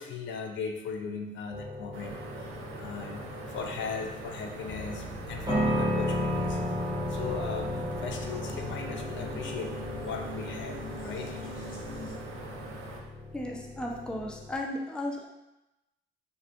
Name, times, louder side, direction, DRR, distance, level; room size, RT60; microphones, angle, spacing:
voice 1, 0.0-6.6 7.1-10.8 11.0-11.7, left 5 dB, 70° left, 3 dB, 0.4 m, -38 dB
sound 1, 1.5-14.5, left 1 dB, 20° right, 0.9 m, -35 dB
sound 2, 1.9-13.0, right 3 dB, 90° right, 0.5 m, -43 dB
sound 3, 4.6-12.1, left 1 dB, 45° left, 0.8 m, -43 dB
voice 2, 13.3-15.3, left 1 dB, 5° left, 0 dB, 0.4 m, -35 dB
3.5 x 2.3 x 2.5 m, 0.94 s
cardioid pair, 90°, 20 cm